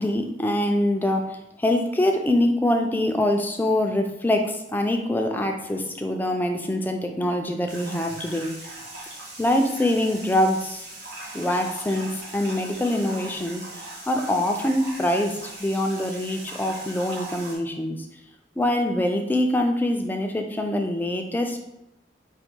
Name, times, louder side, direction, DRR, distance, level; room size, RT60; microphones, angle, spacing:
voice 1, 0.0-8.5 9.4-10.9 11.3-13.7 14.1-18.1 18.6-21.6, left 1 dB, 10° left, 4 dB, 0.4 m, -24 dB
sound 1, 7.7-17.5, right 2 dB, 75° right, 1.3 m, -40 dB
5.2 x 2.1 x 4.4 m, 0.87 s
head